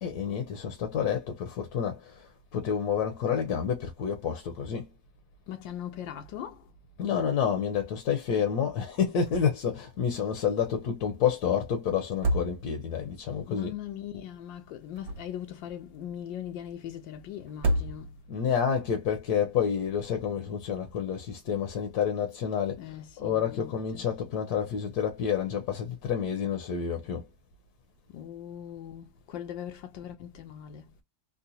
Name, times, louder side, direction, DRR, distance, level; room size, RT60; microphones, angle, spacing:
voice 1, 0.0-4.9 7.0-13.7 18.3-27.3, left 7 dB, 65° left, 1.1 m, -29 dB
voice 2, 5.5-6.7 13.5-18.2 22.8-24.1 27.0-27.1 28.1-30.9, left 10 dB, 85° left, 1.3 m, -40 dB
sound 1, 9.2-9.8 10.0-10.1 12.0-13.0 14.7-15.6 17.5-18.4, right 1 dB, 60° right, 1.3 m, -30 dB
3.8 x 2.2 x 2.7 m
omnidirectional pair, 2.0 m